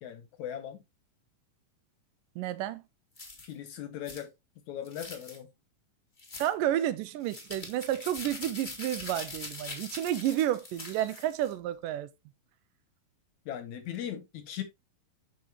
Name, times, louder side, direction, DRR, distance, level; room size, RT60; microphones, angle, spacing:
voice 1, 0.0-0.8 3.4-4.3 4.7-5.5 13.5-14.6, left 10 dB, 70° left, 2.1 m, -39 dB
voice 2, 2.4-2.8 6.4-12.1, right 12 dB, 80° right, 2.2 m, -31 dB
sound 1, 3.2-3.5 4.0-4.2 4.8-5.4 6.2-6.5 7.2-11.5, left 3 dB, 30° left, 0.8 m, -43 dB
8.4 x 6.3 x 2.9 m
omnidirectional pair, 4.0 m